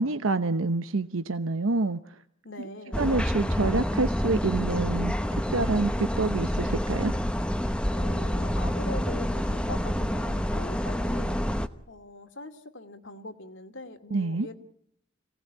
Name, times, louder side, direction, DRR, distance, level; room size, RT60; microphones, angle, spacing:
voice 1, 0.0-2.2 3.0-7.1 14.1-14.5, right 3 dB, 85° right, 10 dB, 0.9 m, -27 dB
voice 2, 2.4-3.0 7.9-11.4 11.9-14.6, left 2 dB, 65° left, 7 dB, 2.3 m, -42 dB
sound 1, 2.9-11.7, equal, 5° left, 1.0 m, -28 dB
27.0 x 18.0 x 8.9 m, 0.70 s
head